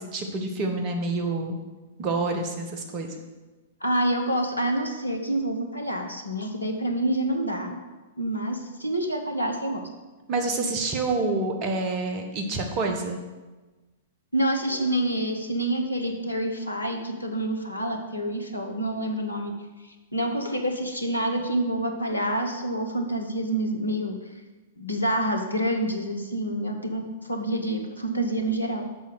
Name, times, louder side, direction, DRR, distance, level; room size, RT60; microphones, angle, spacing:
voice 1, 0.0-1.6 2.0-3.1 10.3-13.2, right 3 dB, 35° right, 3 dB, 1.3 m, -27 dB
voice 2, 3.8-7.7 8.2-9.8 14.3-19.5 19.8-24.2 24.8-28.8, right 1 dB, 85° left, 4 dB, 1.1 m, -27 dB
6.9 x 5.7 x 6.4 m, 1.2 s
figure-of-eight pair, 105°, 0 cm